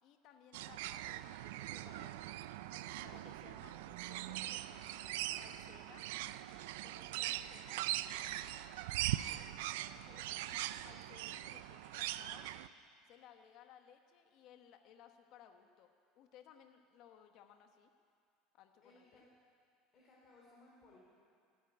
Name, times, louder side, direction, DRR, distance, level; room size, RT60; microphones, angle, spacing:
voice 1, 0.0-2.5 3.0-6.1 6.8-7.8 9.7-12.5 13.0-17.9 18.5-19.2, left 9 dB, 55° left, 6 dB, 1.1 m, -61 dB
sound 1, 0.5-12.7, right 14 dB, 85° right, 0.4 m, -41 dB
voice 2, 18.8-19.2 19.9-21.0, left 2 dB, 35° left, -5 dB, 3.8 m, -63 dB
16.0 x 9.2 x 9.6 m, 2.3 s
supercardioid pair, 125°, 0 cm